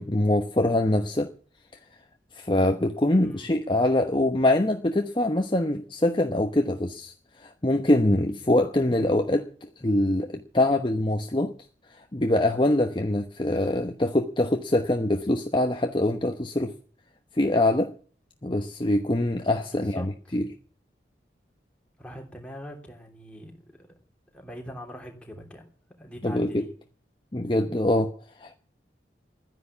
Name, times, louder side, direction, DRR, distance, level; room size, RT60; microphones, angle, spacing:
voice 1, 0.0-1.3 2.3-11.5 11.9-16.7 17.3-17.9 18.4-20.5 26.2-26.7 27.3-28.6, left 1 dB, 25° left, 5 dB, 1.0 m, -24 dB
voice 2, 3.2-3.5 19.7-20.4 22.0-23.9 24.3-25.7 26.0-26.7, equal, 5° left, 1 dB, 3.2 m, -43 dB
13.0 x 10.5 x 8.4 m, 0.43 s
head